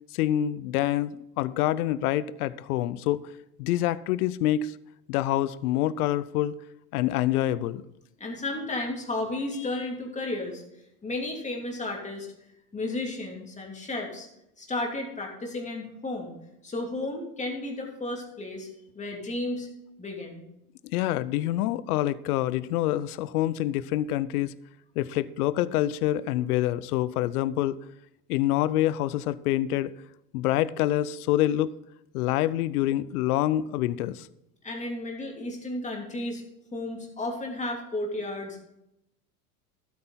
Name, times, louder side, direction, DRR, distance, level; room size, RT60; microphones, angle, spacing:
voice 1, 0.1-3.2 3.6-4.7 5.1-6.5 6.9-7.8 20.8-24.5 25.0-27.8 28.3-29.9 30.3-31.8 32.1-34.3, left 13 dB, 70° left, 18 dB, 0.7 m, -26 dB
voice 2, 8.2-10.6 11.0-12.3 12.7-14.3 14.6-16.3 16.6-18.7 18.9-19.7 20.0-20.5 34.6-36.4 36.7-38.6, left 2 dB, 15° left, 0 dB, 2.8 m, -33 dB
12.5 x 8.6 x 3.9 m, 0.83 s
hypercardioid pair, 105°, 46 cm